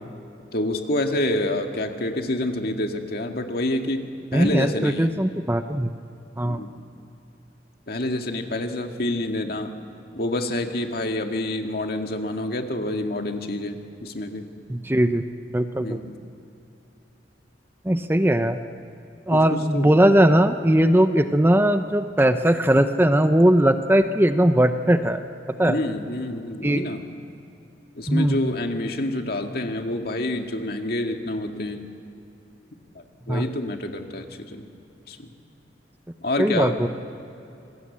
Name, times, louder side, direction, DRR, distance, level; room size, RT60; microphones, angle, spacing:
voice 1, 0.5-5.2 6.4-6.7 7.9-9.7 10.2-14.5 15.8-16.2 19.3-20.1 25.6-27.0 28.0-31.9 33.0-34.7 35.1-35.3 36.2-36.8, left 1 dB, 55° left, 4 dB, 2.0 m, -28 dB
voice 2, 4.3-5.9 6.4-6.6 14.7-15.2 15.5-16.0 17.8-18.6 19.3-25.2 25.6-25.8 26.6-26.8 28.1-28.5 33.3-33.5 36.4-36.9, right 1 dB, 10° right, 9 dB, 0.7 m, -19 dB
27.0 x 20.5 x 8.6 m, 2.8 s
head